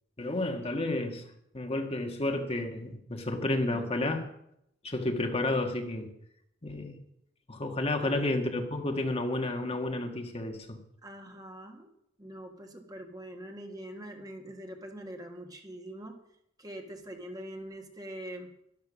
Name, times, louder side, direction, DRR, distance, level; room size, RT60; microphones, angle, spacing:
voice 1, 0.2-1.2 1.5-4.2 4.8-6.1 6.6-7.0 7.5-10.8, left 2 dB, 30° left, 4 dB, 1.6 m, -31 dB
voice 2, 8.0-8.4 11.0-11.9 12.2-16.2 16.6-18.5, right 1 dB, 20° right, 3 dB, 1.6 m, -43 dB
12.5 x 12.0 x 6.2 m, 0.74 s
head